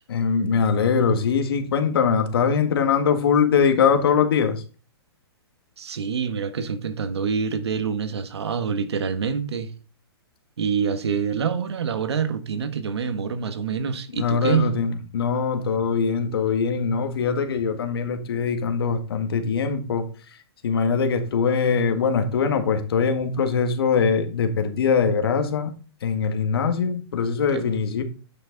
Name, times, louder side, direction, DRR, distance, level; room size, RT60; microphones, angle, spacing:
voice 1, 0.1-4.6 14.1-20.1 20.6-25.7 26.0-28.0, left 6 dB, 65° left, 1.8 m, -22 dB
voice 2, 5.8-9.7 10.6-14.7 27.5-27.8, right 6 dB, 80° right, 1.4 m, -26 dB
10.0 x 6.0 x 4.0 m
hypercardioid pair, 160°, 14 cm